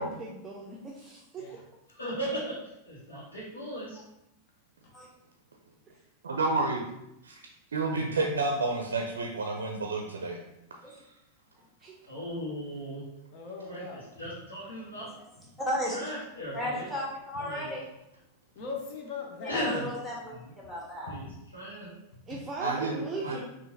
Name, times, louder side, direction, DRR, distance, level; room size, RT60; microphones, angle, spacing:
voice 1, 0.0-1.6 11.8-12.0 22.3-23.4, right 3 dB, 20° right, -3 dB, 0.5 m, -39 dB
voice 2, 1.9-4.0 12.1-13.1 13.7-15.1 15.9-16.9 17.4-17.7 19.5-19.9 20.3-20.5 21.1-21.2 21.5-21.9 23.3-23.4, equal, 70° left, -10 dB, 1.2 m, -37 dB
voice 3, 6.2-6.8 7.2-7.4 7.7-10.4 22.6-23.0 23.2-23.4, right 3 dB, 70° right, 1 dB, 0.5 m, -30 dB
voice 4, 13.3-14.3 15.5-15.6 18.5-19.6 21.1-21.4 22.3-22.4, left 4 dB, 45° left, 1 dB, 0.8 m, -41 dB
voice 5, 15.6-16.0 16.5-17.8 19.4-20.3 20.6-21.2, left 1 dB, 10° left, -5 dB, 1.3 m, -34 dB
5.5 x 2.6 x 2.7 m, 0.86 s
figure-of-eight pair, 90°, 0 cm